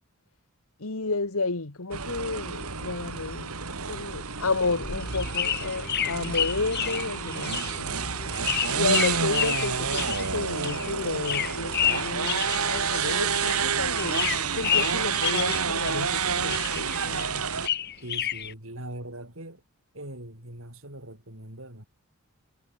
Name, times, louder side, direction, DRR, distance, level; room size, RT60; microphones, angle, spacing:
voice 1, 0.8-3.5 3.8-8.0 8.8-17.5, left 3 dB, 70° left, 1.7 m, -31 dB
sound 1, 1.9-17.7, right 6 dB, 80° right, 3.4 m, -29 dB
sound 2, 4.5-15.8, equal, 20° left, 7.8 m, -49 dB
sound 3, 4.6-13.7 13.9-16.2 16.5-18.5, left 10 dB, 45° left, 1.5 m, -30 dB
voice 2, 18.0-19.6 19.9-21.8, right 1 dB, 65° right, 7.3 m, -41 dB
head